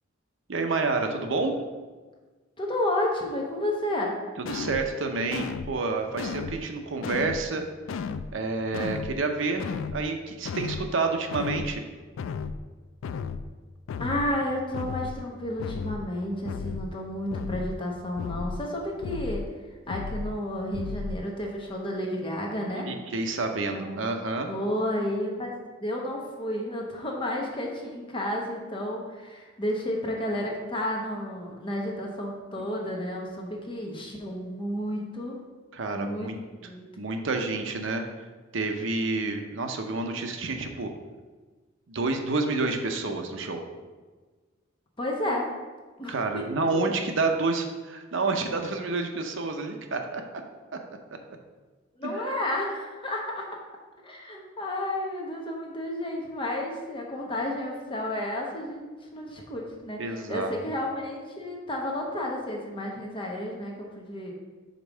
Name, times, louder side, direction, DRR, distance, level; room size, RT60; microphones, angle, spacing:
voice 1, 0.5-1.5 4.5-7.6 8.3-9.7 9.9-11.8 22.9-24.5 35.7-36.4 37.0-38.0 38.5-40.9 41.9-43.6 46.1-50.2 52.0-52.1 60.0-60.5, right 3 dB, 70° right, 5 dB, 0.7 m, -29 dB
voice 2, 2.6-4.2 14.0-19.4 19.9-22.9 23.7-24.0 24.5-25.5 25.8-35.4 35.9-36.3 36.6-36.9 45.0-45.4 46.0-47.0 51.9-53.5 54.0-64.3, left 1 dB, 25° left, -1 dB, 1.0 m, -31 dB
sound 1, 4.5-4.9 5.3-5.7 6.2-6.6 7.0-7.4 7.9-8.3 8.7-9.2 9.6-10.0 10.4-10.9 11.3-11.7 12.2-12.6 13.0-13.4 13.9-14.3 14.7-15.2 15.6-16.0 16.5-16.9 17.3-17.7 18.2-18.6 19.0-19.5 19.9-20.3 20.7-21.2, left 5 dB, 75° left, 0.3 m, -33 dB
5.2 x 4.4 x 6.2 m, 1.4 s
head